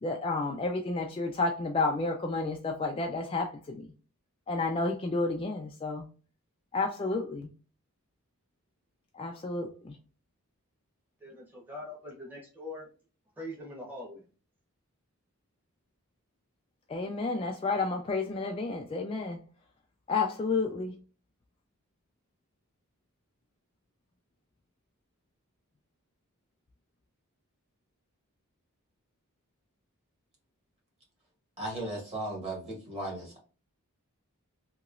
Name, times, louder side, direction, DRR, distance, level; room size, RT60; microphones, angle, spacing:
voice 1, 0.0-3.9 4.5-6.1 6.7-7.5 9.1-10.0 16.9-19.4 20.1-21.0, left 3 dB, 25° left, 0.3 m, -31 dB
voice 2, 11.2-12.9 13.4-14.2, left 1 dB, 10° right, 0.9 m, -42 dB
voice 3, 31.6-33.4, right 1 dB, 30° right, 1.6 m, -36 dB
3.0 x 2.8 x 2.4 m
head